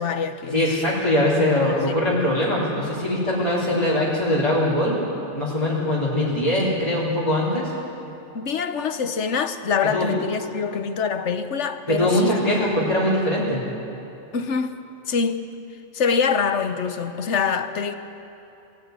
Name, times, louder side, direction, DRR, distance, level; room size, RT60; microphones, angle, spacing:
voice 1, 0.0-0.8 1.4-2.1 8.3-12.6 14.3-14.8 15.1-15.5 15.9-17.9, left 6 dB, 75° left, 1.3 m, -25 dB
voice 2, 0.5-5.0 5.3-7.7 9.9-10.1 11.9-13.6, left 1 dB, 25° left, 3.9 m, -22 dB
22.0 x 15.5 x 9.5 m
omnidirectional pair, 1.2 m